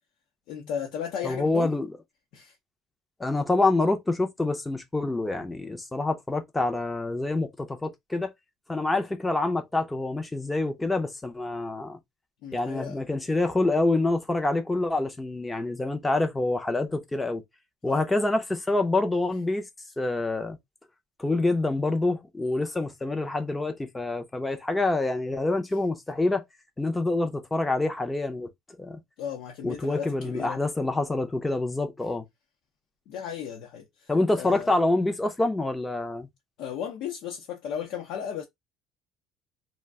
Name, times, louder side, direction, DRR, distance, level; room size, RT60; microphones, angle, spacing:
voice 1, 0.5-1.7 2.3-2.6 12.4-13.0 17.8-18.0 29.2-30.6 33.1-34.7 36.6-38.4, left 8 dB, 75° left, 0.7 m, -35 dB
voice 2, 1.2-1.9 3.2-8.3 8.7-12.0 12.5-17.4 17.8-19.6 20.0-20.6 21.2-26.5 26.8-28.5 28.8-29.0 29.6-32.2 34.1-36.3, left 2 dB, 10° left, 0.5 m, -26 dB
2.4 x 2.2 x 3.4 m
cardioid pair, 140°, 0 cm